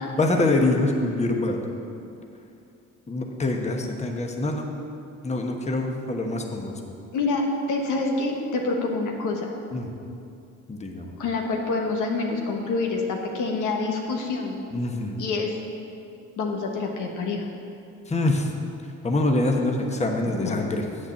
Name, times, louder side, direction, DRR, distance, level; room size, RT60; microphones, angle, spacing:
voice 1, 0.1-1.7 3.1-4.7 5.2-6.7 9.7-9.9 10.7-11.1 14.7-15.2 18.1-18.5 19.0-20.8, left 2 dB, 20° left, 2 dB, 1.1 m, -25 dB
voice 2, 7.1-9.5 11.2-14.6 15.2-15.5 16.4-17.4 20.2-20.7, left 3 dB, 85° left, 1 dB, 1.4 m, -27 dB
8.1 x 6.5 x 7.4 m, 2.6 s
cardioid pair, 90°, 30 cm